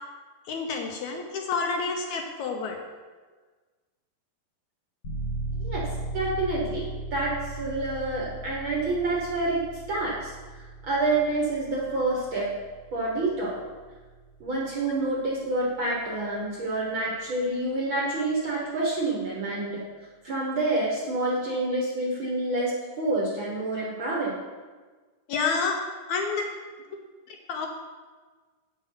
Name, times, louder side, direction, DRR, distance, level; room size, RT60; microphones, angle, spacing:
voice 1, 0.5-2.8 16.8-16.9 25.3-25.8 26.1-26.5 27.3-27.7, left 4 dB, 75° left, 3 dB, 1.9 m, -29 dB
sound 1, 5.0-15.6, right 2 dB, 40° left, 1.5 m, -38 dB
voice 2, 6.1-9.6 9.9-10.3 10.8-12.5 12.9-13.6 14.4-19.8 20.2-22.7 23.0-24.4, right 2 dB, 55° right, -4 dB, 1.5 m, -28 dB
8.3 x 6.4 x 5.7 m, 1.4 s
omnidirectional pair, 3.9 m